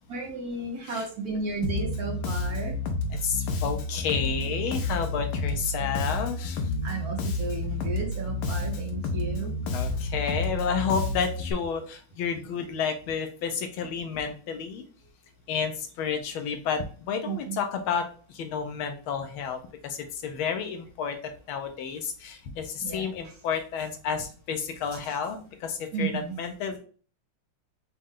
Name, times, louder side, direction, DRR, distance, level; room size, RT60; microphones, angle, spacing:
voice 1, 0.1-2.8 6.8-9.5 9.8-10.0 17.3-17.6 22.8-23.1 25.9-26.4, right 4 dB, 55° right, 0 dB, 1.2 m, -33 dB
Bass guitar, 1.6-11.5, left 2 dB, 65° left, 1.1 m, -30 dB
voice 2, 3.1-6.7 9.7-14.8 15.5-26.8, left 6 dB, 80° left, 6 dB, 1.6 m, -31 dB
5.3 x 2.3 x 3.6 m, 0.40 s
omnidirectional pair, 2.2 m